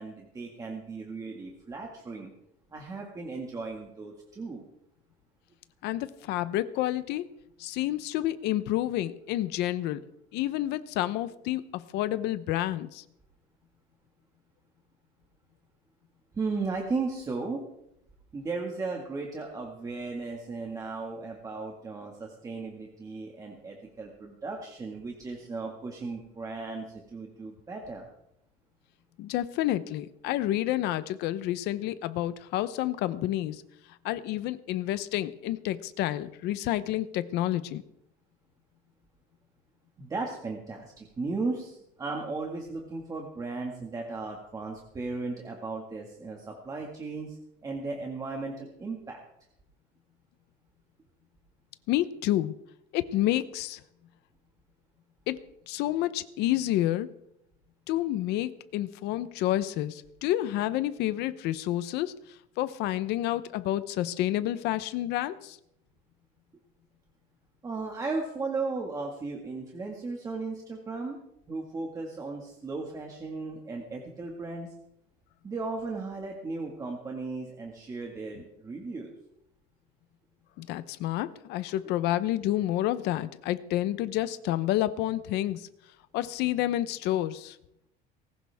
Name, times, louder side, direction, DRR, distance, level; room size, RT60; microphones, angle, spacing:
voice 1, 0.0-2.3 2.7-4.6 16.3-17.6 18.3-28.1 40.0-49.2 67.6-71.2 71.5-74.7 75.4-79.1, right 3 dB, 20° right, 0 dB, 1.9 m, -36 dB
voice 2, 5.8-7.3 7.6-10.0 10.3-13.0 29.2-33.6 34.0-37.8 51.9-52.5 52.9-53.8 55.3-55.4 55.7-57.1 57.9-65.6 80.6-85.7 86.1-87.6, left 14 dB, 65° left, 13 dB, 0.9 m, -29 dB
20.0 x 18.0 x 3.6 m, 0.80 s
cardioid pair, 175°, 19 cm